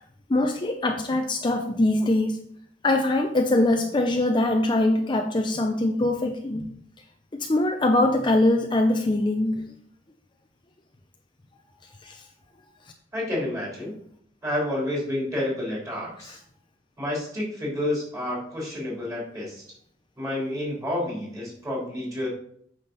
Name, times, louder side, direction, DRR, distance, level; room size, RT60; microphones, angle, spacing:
voice 1, 0.3-2.4 2.8-6.7 7.3-9.6 12.0-12.2, left 1 dB, 25° left, 3 dB, 0.6 m, -22 dB
voice 2, 13.1-13.9 14.4-16.4 17.0-19.6 20.2-22.3, left 1 dB, 20° right, -4 dB, 3.5 m, -29 dB
8.7 x 5.9 x 4.0 m, 0.66 s
head